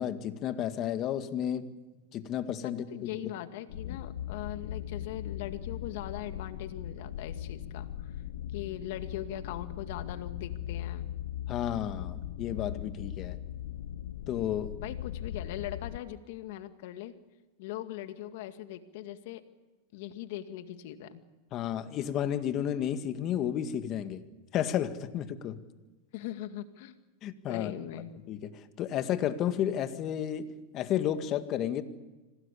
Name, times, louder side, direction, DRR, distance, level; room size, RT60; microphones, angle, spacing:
voice 1, 0.0-1.7 2.1-2.8 3.9-4.0 11.5-13.4 14.3-14.7 21.5-24.2 24.5-25.6 27.2-27.7 28.3-31.8, left 10 dB, 40° left, 9 dB, 1.9 m, -32 dB
voice 2, 2.6-8.1 8.5-11.1 14.8-17.1 17.6-19.4 19.9-21.2 26.1-27.0 27.5-28.1, left 12 dB, 65° left, 9 dB, 2.1 m, -40 dB
sound 1, 3.7-16.0, left 11 dB, 85° left, 1.2 m, -39 dB
26.0 x 18.5 x 8.5 m, 1.2 s
supercardioid pair, 130°, 0 cm